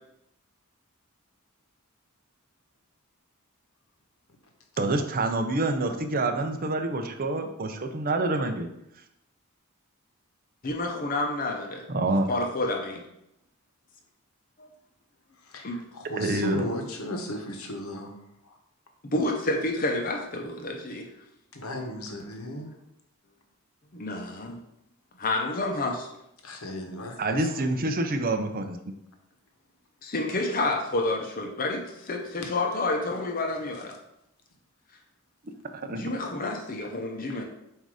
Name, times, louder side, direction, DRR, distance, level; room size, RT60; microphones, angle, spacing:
voice 1, 4.8-8.7 11.9-12.3 16.2-16.7 27.2-29.0 35.8-36.0, right 2 dB, 45° right, 6 dB, 0.7 m, -27 dB
voice 2, 10.6-11.8 12.3-13.0 14.6-14.7 15.6-15.8 19.0-21.1 23.9-24.6 25.2-26.1 30.0-34.0 36.0-37.4, left 2 dB, 40° left, 1 dB, 0.8 m, -29 dB
voice 3, 15.4-18.2 18.4-18.6 21.5-22.7 26.4-27.7 37.3-37.4, left 1 dB, 75° left, 3 dB, 1.1 m, -36 dB
7.6 x 2.7 x 4.8 m, 0.82 s
head